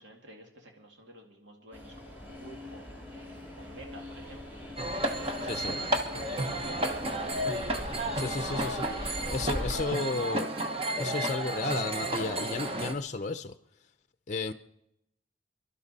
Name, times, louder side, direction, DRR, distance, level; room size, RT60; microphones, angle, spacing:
voice 1, 0.0-7.1, right 1 dB, 85° right, 1 dB, 2.4 m, -50 dB
Train, 1.7-9.8, left 1 dB, 10° right, 2.4 m, -41 dB
sound 1, 4.8-12.9, right 1 dB, 30° right, 1.0 m, -32 dB
voice 2, 8.1-10.5 11.0-13.6 14.3-14.5, left 3 dB, 40° left, 9 dB, 0.6 m, -33 dB
28.0 x 11.5 x 4.2 m, 0.80 s
head